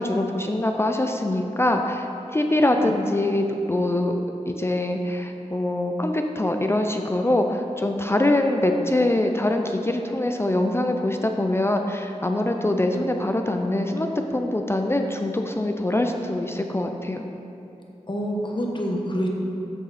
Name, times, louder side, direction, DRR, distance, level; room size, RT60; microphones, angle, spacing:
voice 1, 0.0-4.2 4.5-17.2, left 1 dB, 20° left, 4 dB, 0.4 m, -23 dB
voice 2, 18.1-19.3, equal, 40° left, 0 dB, 1.1 m, -27 dB
8.2 x 6.6 x 4.1 m, 2.9 s
wide cardioid pair, 95°, 13 cm